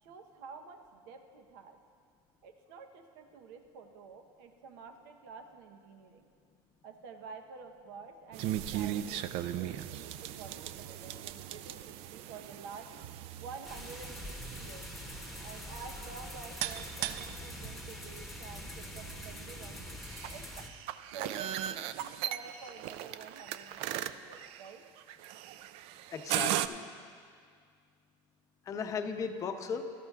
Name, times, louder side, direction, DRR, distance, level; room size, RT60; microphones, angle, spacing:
voice 1, 0.0-1.8 2.4-6.3 6.8-12.9 13.2-14.9 15.4-19.8 20.3-20.5 21.1-24.9, right 5 dB, 85° right, 6 dB, 1.0 m, -49 dB
sound 1, 8.3-26.7, right 12 dB, 60° right, 0.4 m, -39 dB
sound 2, 13.6-20.7, left 1 dB, ahead, 1.1 m, -44 dB
voice 2, 26.1-26.9 28.7-29.9, left 6 dB, 30° left, 6 dB, 0.6 m, -36 dB
17.0 x 12.5 x 2.4 m, 2.1 s
cardioid pair, 145°, 11 cm